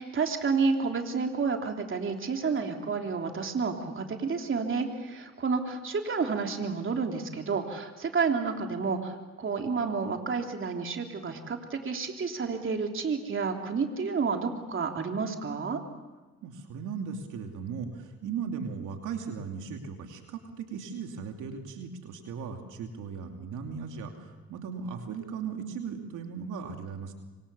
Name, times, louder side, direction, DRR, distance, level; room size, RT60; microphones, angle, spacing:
voice 1, 0.0-15.8, right 5 dB, 40° right, 3 dB, 3.3 m, -30 dB
voice 2, 16.4-27.1, right 6 dB, 85° right, 3 dB, 2.8 m, -37 dB
26.0 x 25.5 x 7.0 m, 1.2 s
cardioid pair, 90°, 30 cm